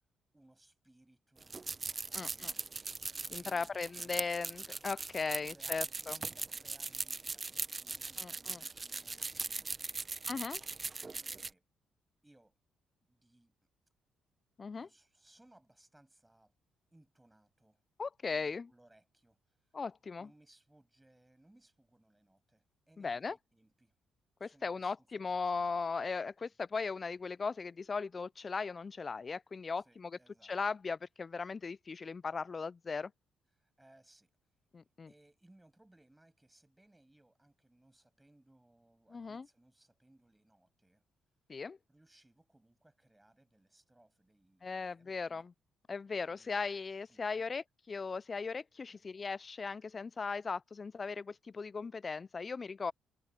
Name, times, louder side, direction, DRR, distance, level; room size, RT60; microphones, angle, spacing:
voice 1, 0.3-2.6 3.2-4.4 5.4-10.2 11.3-11.6 12.2-12.6 13.0-13.5 14.7-16.5 16.9-17.8 18.2-19.7 20.2-23.9 24.4-25.8 26.2-26.6 29.8-30.5 33.5-34.4 35.1-41.0 41.9-45.5 46.3-46.7 47.1-47.5 48.9-49.0, right 1 dB, 10° right, 7.5 m, -66 dB
sound 1, 1.4-11.5, right 4 dB, 30° right, 0.6 m, -40 dB
voice 2, 2.1-2.5 3.3-6.2 8.2-8.6 10.3-10.6 14.6-14.9 18.0-18.7 19.7-20.3 23.0-23.4 24.4-33.1 34.7-35.1 39.1-39.5 41.5-41.8 44.6-45.5 45.9-52.9, left 4 dB, 35° left, 0.3 m, -38 dB
cardioid pair, 90°, 0 cm